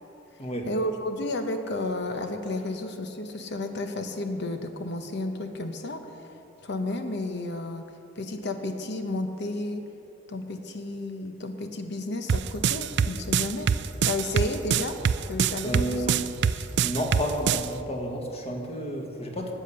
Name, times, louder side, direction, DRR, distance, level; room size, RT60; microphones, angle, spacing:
voice 1, 0.7-7.8 8.2-9.8 10.3-15.0 15.3-16.1, left 2 dB, 60° left, 6 dB, 0.8 m, -32 dB
sound 1, 12.3-17.7, right 7 dB, 65° right, 0.4 m, -24 dB
voice 2, 15.6-19.5, equal, 35° left, 1 dB, 1.6 m, -31 dB
13.0 x 8.5 x 6.8 m, 2.8 s
head